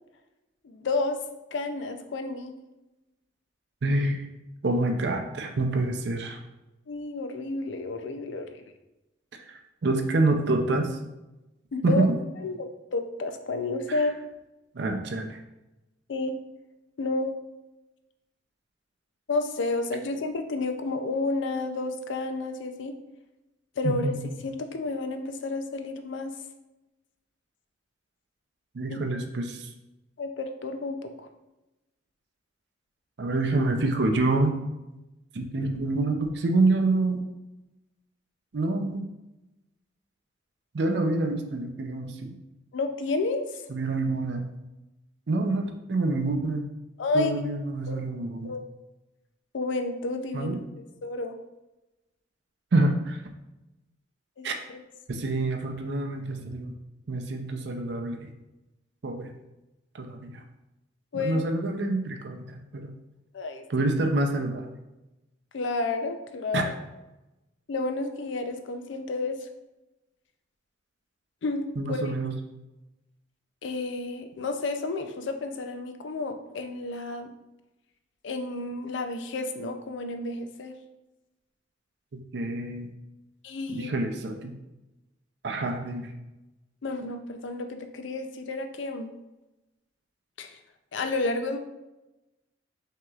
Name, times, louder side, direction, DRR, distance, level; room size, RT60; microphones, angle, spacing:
voice 1, 0.6-1.2 1.5-2.5 6.9-8.6 11.7-12.1 12.4-14.1 16.1-16.4 17.0-17.3 19.3-23.0 23.8-24.1 24.4-26.3 28.9-29.0 30.2-31.3 42.7-43.7 47.0-47.4 47.9-48.0 48.4-48.6 49.5-50.6 51.0-51.4 54.4-54.8 61.1-61.4 63.3-63.6 65.5-66.7 67.7-69.5 71.4-72.1 73.6-77.3 78.2-80.8 83.4-83.9 86.8-89.1 90.4-90.6 90.9-91.6, left 3 dB, 80° left, 7 dB, 0.5 m, -31 dB
voice 2, 3.8-4.3 4.6-6.4 9.5-11.0 11.8-12.1 13.9-14.0 14.7-15.4 23.8-24.2 28.7-29.7 33.2-34.6 35.3-37.3 38.5-39.0 40.7-42.3 43.7-44.5 45.3-46.6 47.1-48.5 50.3-50.6 52.7-53.2 54.4-54.6 55.1-56.7 57.1-58.3 59.0-59.3 59.9-60.4 61.1-62.9 63.7-64.7 66.5-66.6 71.8-72.3 82.1-82.9 83.7-84.5 85.4-86.1, right 2 dB, 65° right, 4 dB, 0.5 m, -27 dB
6.0 x 2.9 x 2.4 m, 0.99 s
head